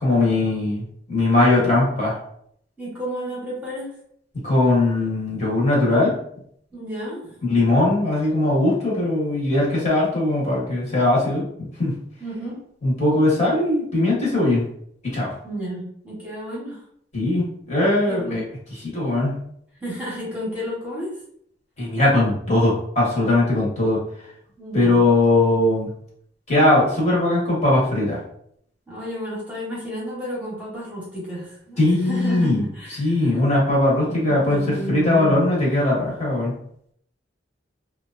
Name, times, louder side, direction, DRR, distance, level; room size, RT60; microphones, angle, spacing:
voice 1, 0.0-2.2 4.4-6.1 7.4-12.0 12.8-14.6 15.1-15.3 17.1-18.4 18.9-19.4 21.8-24.0 24.7-25.9 26.5-28.2 31.8-32.6 33.0-36.5, left 2 dB, 40° left, -6 dB, 1.1 m, -20 dB
voice 2, 2.8-3.9 6.7-7.4 12.2-12.6 15.4-16.8 18.1-18.4 19.8-21.1 24.6-25.0 28.9-33.3 33.9-35.4, equal, 10° right, -7 dB, 0.9 m, -32 dB
2.9 x 2.2 x 2.5 m, 0.68 s
head